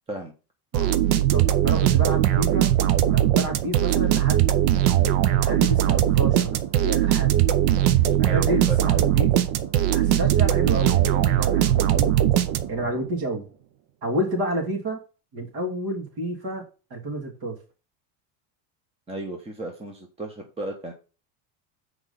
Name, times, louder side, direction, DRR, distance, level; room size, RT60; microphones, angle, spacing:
voice 1, 0.7-2.8 3.1-4.6 5.4-7.3 8.2-9.3 9.9-12.1 12.7-13.5 14.0-15.0 15.3-16.6 16.9-17.6, right 1 dB, 45° right, 0 dB, 3.1 m, -30 dB
sound 1, 0.7-12.9, right 12 dB, 65° right, 0.9 m, -20 dB
voice 2, 8.3-8.8 19.1-20.9, right 2 dB, 10° right, 3 dB, 1.1 m, -34 dB
6.4 x 4.8 x 5.6 m, 0.34 s
cardioid pair, 140°, 49 cm